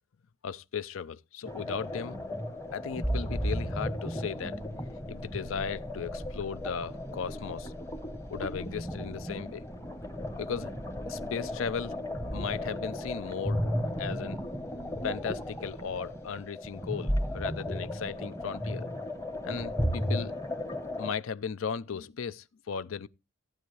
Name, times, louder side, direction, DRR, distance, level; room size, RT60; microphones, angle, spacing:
voice 1, 0.4-2.2 2.7-4.6 5.1-7.7 8.3-9.7 10.4-10.7 11.1-11.9 12.3-13.6 14.0-14.4 15.0-18.9 19.4-20.3 21.0-23.1, left 6 dB, 75° left, 0.5 m, -36 dB
sound 1, 1.4-21.1, equal, 15° left, 1.1 m, -34 dB
14.5 x 9.1 x 3.2 m
head